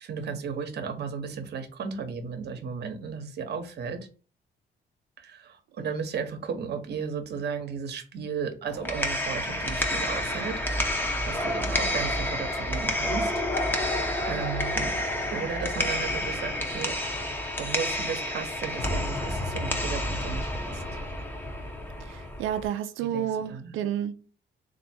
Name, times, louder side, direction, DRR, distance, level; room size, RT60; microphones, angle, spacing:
voice 1, 0.0-4.0 5.2-10.6 11.2-13.3 14.2-15.0 15.3-20.8 23.0-23.8, right 6 dB, 55° right, 0.9 m, -35 dB
sound 1, 8.7-22.6, left 1 dB, 10° left, 0.8 m, -29 dB
voice 2, 22.1-24.1, right 10 dB, 85° right, 0.4 m, -30 dB
3.3 x 2.6 x 4.3 m
cardioid pair, 90°, 20 cm